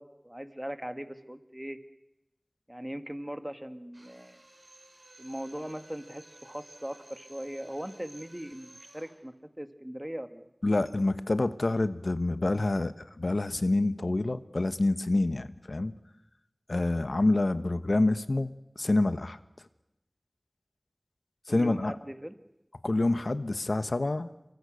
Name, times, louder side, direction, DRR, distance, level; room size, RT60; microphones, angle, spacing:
voice 1, 0.0-1.8 2.7-4.4 5.2-8.7 8.9-10.5 21.5-22.3, equal, 15° right, 9 dB, 1.9 m, -39 dB
Drill, 3.9-9.2, right 1 dB, 70° right, 6.3 m, -54 dB
voice 2, 10.6-15.9 16.7-19.4 21.5-21.9 22.8-24.3, left 2 dB, 80° left, 12 dB, 1.2 m, -27 dB
28.5 x 24.0 x 6.5 m, 0.90 s
wide cardioid pair, 40°, 0 cm